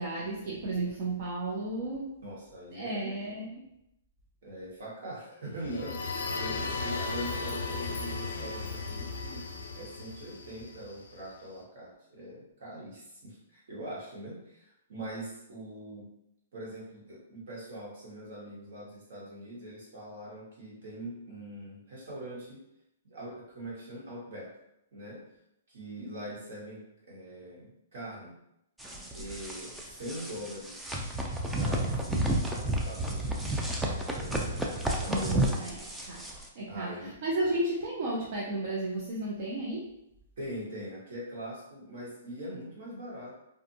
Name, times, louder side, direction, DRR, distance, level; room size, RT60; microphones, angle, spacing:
voice 1, 0.0-2.1 2.7-3.7 35.1-36.3 36.6-39.9, right 2 dB, 50° right, -4 dB, 0.6 m, -33 dB
voice 2, 2.2-3.2 4.4-9.4 9.8-16.0 16.5-22.6 23.1-24.5 24.9-25.2 25.7-28.3 29.1-30.9 31.5-33.4 33.9-34.5 35.0-35.5 36.7-37.6 40.4-43.3, right 1 dB, 65° right, -5 dB, 1.4 m, -42 dB
sound 1, 5.5-11.3, left 3 dB, 90° left, 0.4 m, -36 dB
sound 2, 28.8-36.5, right 1 dB, 5° right, 0.3 m, -31 dB
2.5 x 2.4 x 2.7 m, 0.82 s
hypercardioid pair, 150°, 0 cm